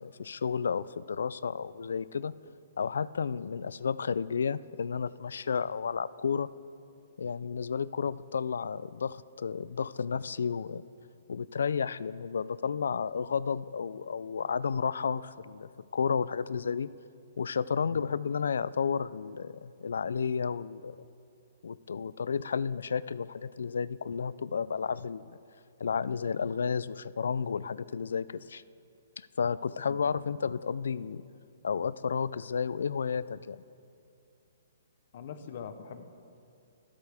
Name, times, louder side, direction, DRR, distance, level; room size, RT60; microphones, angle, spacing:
voice 1, 0.0-2.3 2.8-6.5 7.2-10.8 11.3-16.9 17.4-21.0 21.6-25.4 25.8-28.6 29.2-31.2 31.6-33.6, left 6 dB, 80° left, 18 dB, 0.3 m, -32 dB
voice 2, 35.1-36.1, left 7 dB, 45° left, 10 dB, 0.8 m, -43 dB
24.5 x 8.1 x 3.5 m, 2.6 s
hypercardioid pair, 170°, 0 cm